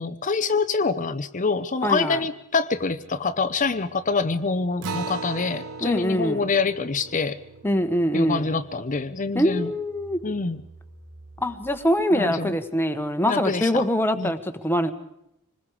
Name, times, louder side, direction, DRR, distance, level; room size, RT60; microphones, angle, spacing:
voice 1, 0.0-7.4 8.1-9.7 10.2-10.6 12.1-12.5 13.2-13.8 14.2-14.3, left 4 dB, 35° left, 12 dB, 0.7 m, -26 dB
voice 2, 1.8-2.3 5.8-6.5 7.6-8.5 9.3-10.2 11.4-14.9, equal, 10° left, 8 dB, 1.3 m, -23 dB
sound 1, 2.7-12.0, right 2 dB, 50° right, 2.6 m, -53 dB
Acoustic guitar, 4.8-9.7, right 4 dB, 80° right, 0.8 m, -38 dB
26.0 x 20.5 x 5.0 m, 0.81 s
head